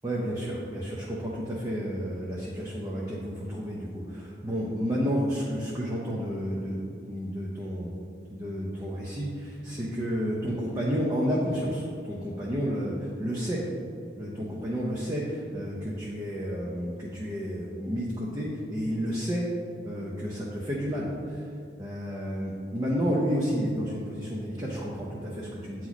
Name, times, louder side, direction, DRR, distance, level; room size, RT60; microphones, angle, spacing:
voice 1, 0.0-8.0 8.3-13.6 14.2-19.4 19.8-21.5 21.8-25.9, equal, 20° right, -5 dB, 0.6 m, -31 dB
8.4 x 3.0 x 4.0 m, 2.5 s
head